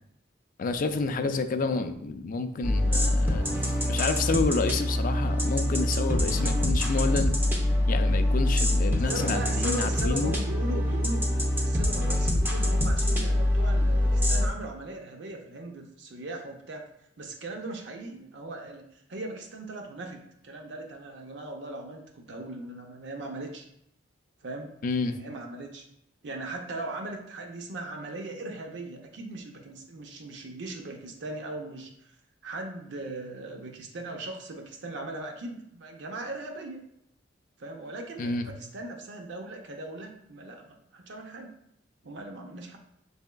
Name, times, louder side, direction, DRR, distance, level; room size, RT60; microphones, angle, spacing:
voice 1, 0.6-7.4 7.9-10.3 24.8-25.2 38.2-38.5, left 4 dB, 45° left, 8 dB, 0.4 m, -29 dB
sound 1, 2.6-14.5, left 1 dB, 10° right, 0.6 m, -25 dB
voice 2, 9.1-11.2 11.6-16.8 17.2-23.6 24.4-24.7 25.2-25.8 26.2-32.1 32.4-36.8 37.6-41.5 42.0-42.8, right 2 dB, 70° right, 2 dB, 0.6 m, -39 dB
6.3 x 3.4 x 2.2 m, 0.75 s
head